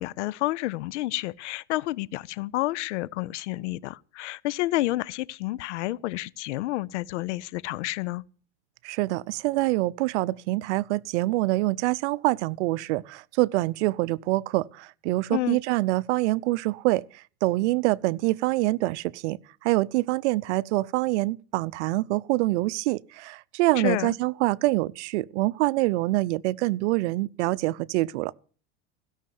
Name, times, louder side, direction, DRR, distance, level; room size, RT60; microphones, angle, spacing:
voice 1, 0.0-8.2 15.3-15.6 23.8-24.2, left 17 dB, 90° left, 0.6 m, -30 dB
voice 2, 8.8-28.3, right 19 dB, 75° right, 0.7 m, -25 dB
16.5 x 6.5 x 9.3 m
supercardioid pair, 125°, 34 cm